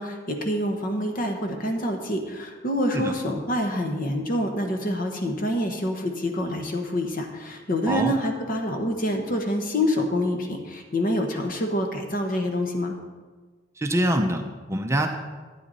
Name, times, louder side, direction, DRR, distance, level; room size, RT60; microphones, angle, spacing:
voice 1, 0.0-12.9, left 1 dB, 50° left, 4 dB, 1.2 m, -26 dB
voice 2, 13.8-15.1, right 1 dB, 15° right, 4 dB, 0.6 m, -24 dB
12.0 x 9.4 x 4.1 m, 1.4 s
head